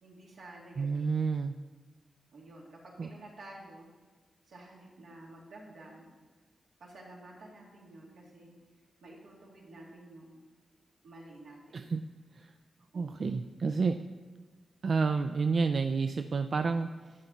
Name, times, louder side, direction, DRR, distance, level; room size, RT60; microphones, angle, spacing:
voice 1, 0.0-1.3 2.3-3.9 4.5-6.1 6.8-8.6 9.0-10.4 11.0-11.9 12.9-13.3, right 2 dB, 85° right, -3 dB, 2.5 m, -51 dB
voice 2, 0.8-1.5 3.0-3.1 11.7-12.0 12.3-12.5 12.9-14.0 14.8-17.1, right 4 dB, 55° right, 8 dB, 0.3 m, -30 dB
11.0 x 8.0 x 4.1 m, 1.3 s
wide cardioid pair, 100°, 0 cm